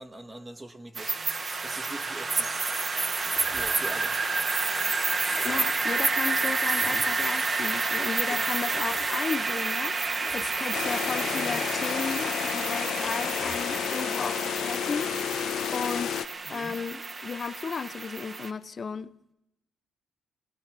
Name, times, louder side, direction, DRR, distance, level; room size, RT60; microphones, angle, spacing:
voice 1, 0.0-2.6 3.5-4.3 8.3-8.5 11.4-11.6 16.4-16.8, right 1 dB, 20° right, 1.5 m, -43 dB
sound 1, 0.9-18.5, right 3 dB, 40° right, 1.5 m, -29 dB
sound 2, 3.4-4.0 4.7-5.8 6.4-6.5 6.7-7.5 8.4-9.2 9.9-10.8 11.1-11.2 11.5-12.2 12.5-12.6 12.9-13.6, left 3 dB, 20° left, 1.5 m, -44 dB
voice 2, 5.4-15.2 15.7-16.2 16.5-19.1, left 5 dB, 40° left, 0.9 m, -34 dB
sound 3, 10.7-16.3, left 10 dB, 75° left, 0.7 m, -31 dB
22.0 x 19.0 x 6.1 m
cardioid pair, 90°, 0 cm